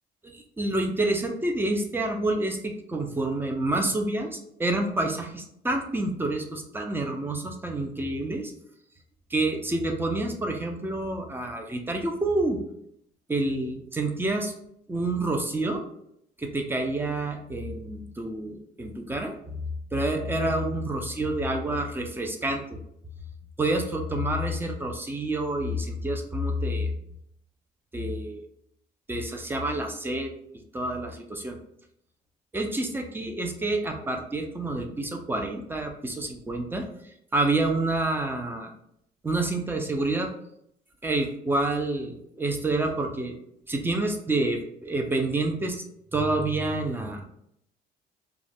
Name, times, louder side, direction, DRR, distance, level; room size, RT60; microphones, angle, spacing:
voice 1, 0.2-8.5 9.3-12.6 13.3-14.5 14.9-15.8 16.4-19.3 19.9-22.8 23.6-26.9 27.9-28.4 29.1-30.3 30.7-31.6 32.5-36.9 37.3-38.7 39.2-40.3 41.0-43.4 43.7-45.8 46.1-47.2, right 2 dB, 10° right, 3 dB, 0.4 m, -28 dB
2.3 x 2.1 x 3.3 m, 0.73 s
cardioid pair, 110°, 17 cm